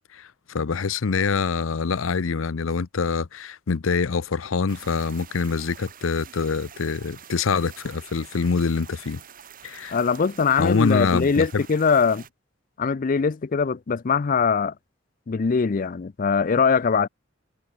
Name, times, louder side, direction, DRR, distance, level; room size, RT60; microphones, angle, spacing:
voice 1, 0.1-9.2 9.6-10.0 10.6-11.6, left 5 dB, 85° left, 0.6 m, -25 dB
sound 1, 4.7-12.3, right 8 dB, 45° right, 1.4 m, -46 dB
voice 2, 9.9-12.2 12.8-14.7 15.3-17.1, left 5 dB, 40° left, 0.4 m, -22 dB
head